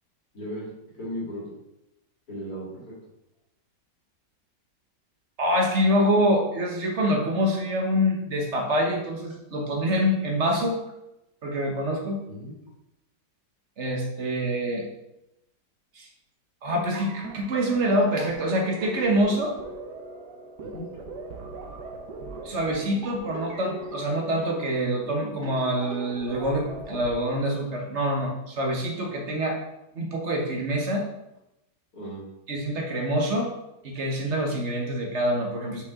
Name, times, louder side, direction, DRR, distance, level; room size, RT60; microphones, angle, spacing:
voice 1, 0.3-0.7 1.0-1.6 2.3-2.9 12.3-12.5 20.6-20.9 31.9-32.2, equal, 55° left, -6 dB, 2.7 m, -36 dB
voice 2, 5.4-10.8 11.4-12.2 13.8-14.8 16.0-16.1 16.6-19.6 22.4-29.6 29.9-31.1 32.5-33.5 33.8-35.8, equal, 45° right, 1 dB, 1.3 m, -25 dB
sound 1, 16.7-27.1, right 3 dB, 75° right, 1.4 m, -40 dB
5.8 x 5.3 x 3.6 m, 0.89 s
omnidirectional pair, 1.9 m